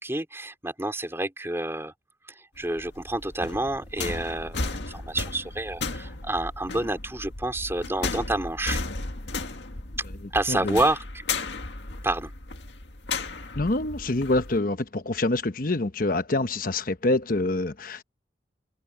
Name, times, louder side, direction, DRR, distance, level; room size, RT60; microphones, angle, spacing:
voice 1, 0.0-1.9 2.6-8.8 10.3-11.0 12.0-12.3, right 2 dB, 15° right, 3.7 m, -28 dB
sound 1, 2.6-14.6, left 3 dB, 85° left, 1.9 m, -35 dB
voice 2, 10.5-10.8 13.5-18.0, left 2 dB, 50° left, 1.1 m, -26 dB
head